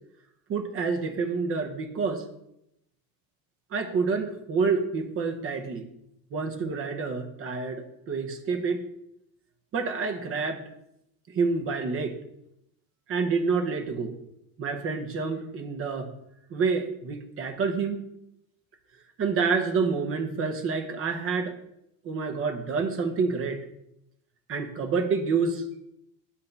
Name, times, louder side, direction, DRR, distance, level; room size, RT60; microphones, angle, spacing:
voice 1, 0.5-2.2 3.7-5.9 6.3-8.8 9.7-10.6 11.3-12.2 13.1-14.1 14.6-16.1 16.5-18.0 19.2-21.5 22.0-23.6 24.5-25.8, right 4 dB, 30° right, 5 dB, 0.8 m, -28 dB
8.0 x 2.7 x 5.3 m, 0.80 s
cardioid pair, 145°, 43 cm